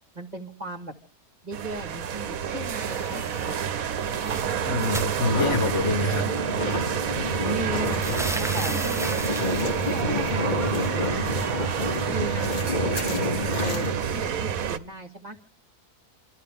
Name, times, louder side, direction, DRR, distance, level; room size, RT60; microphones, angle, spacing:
voice 1, 0.1-0.9 1.4-3.8 7.4-9.4 9.8-11.7 12.1-13.8 14.1-15.4, right 1 dB, 30° right, 1.5 m, -37 dB
sound 1, 1.5-14.8, right 8 dB, 70° right, 1.3 m, -28 dB
sound 2, 2.6-3.6 3.9-5.9 6.8-6.9 7.3-10.0, right 1 dB, 5° right, 0.5 m, -36 dB
voice 2, 4.6-6.3, left 2 dB, 55° left, 1.7 m, -26 dB
sound 3, 5.2-13.9, left 2 dB, 35° left, 1.4 m, -29 dB
28.5 x 13.0 x 3.6 m
omnidirectional pair, 1.6 m